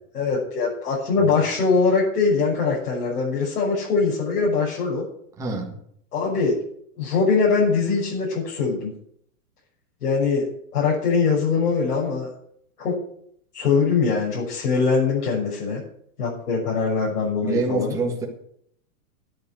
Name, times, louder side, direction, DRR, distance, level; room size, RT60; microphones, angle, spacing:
voice 1, 0.1-5.0 6.1-6.6 7.0-8.9 10.0-12.3 12.8-13.0 13.5-15.8 16.2-17.9, left 4 dB, 75° left, -6 dB, 6.8 m, -22 dB
voice 2, 5.4-5.8 17.4-18.3, right 3 dB, 5° right, 0 dB, 1.5 m, -25 dB
10.5 x 8.3 x 8.9 m, 0.67 s
hypercardioid pair, 175°, 45 cm